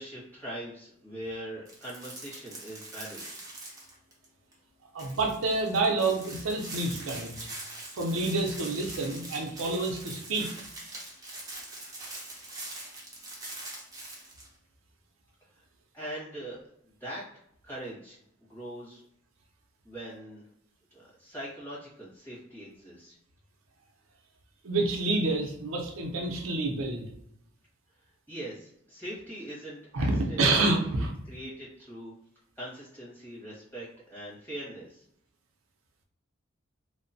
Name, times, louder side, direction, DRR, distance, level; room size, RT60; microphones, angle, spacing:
voice 1, 0.0-3.2 15.9-16.6 17.0-17.2 17.6-18.2 18.5-19.0 19.8-20.4 20.9-23.2 28.3-30.6 30.9-31.0 31.3-32.1 32.6-35.0, right 1 dB, 10° left, -9 dB, 1.3 m, -41 dB
sound 1, 1.7-4.2 4.5-4.6 5.0-14.5, right 2 dB, 15° right, 0.6 m, -43 dB
voice 2, 4.9-7.5 7.9-10.5 24.6-27.1 29.9-31.1, right 2 dB, 90° right, 1 dB, 0.5 m, -28 dB
2.9 x 2.1 x 2.6 m, 0.73 s
head